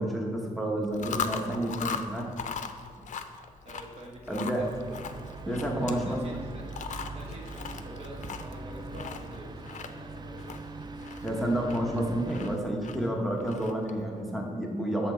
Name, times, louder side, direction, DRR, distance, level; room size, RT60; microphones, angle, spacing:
voice 1, 0.0-2.3 4.3-4.6 5.5-6.4 11.2-15.1, right 1 dB, ahead, -1 dB, 1.0 m, -30 dB
Chewing mastication, 0.8-14.0, left 6 dB, 60° left, 0.5 m, -40 dB
voice 2, 3.6-5.2 5.4-6.7 7.1-10.6, right 1 dB, 45° right, -1 dB, 1.4 m, -46 dB
sound 1, 4.6-12.6, right 3 dB, 30° right, 0.4 m, -42 dB
7.0 x 5.9 x 4.4 m, 2.2 s
wide cardioid pair, 115°, 14 cm